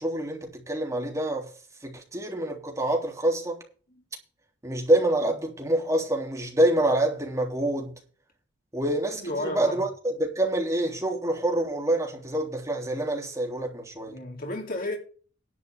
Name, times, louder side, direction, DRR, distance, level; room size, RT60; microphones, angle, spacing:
voice 1, 0.0-1.5 1.8-3.6 4.6-7.9 8.7-14.2, right 1 dB, 15° right, 3.3 m, -26 dB
voice 2, 9.1-9.8 14.1-15.0, left 1 dB, 50° left, 4.1 m, -32 dB
11.0 x 5.2 x 8.4 m
head